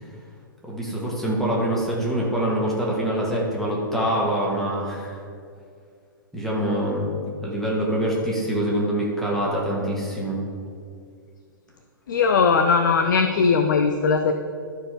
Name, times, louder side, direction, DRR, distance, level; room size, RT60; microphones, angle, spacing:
voice 1, 0.6-5.2 6.3-7.1 7.4-10.4, right 1 dB, ahead, -5 dB, 2.3 m, -25 dB
voice 2, 12.1-14.3, left 5 dB, 60° left, 6 dB, 0.6 m, -19 dB
13.0 x 4.6 x 5.2 m, 2.3 s
figure-of-eight pair, 110°, 11 cm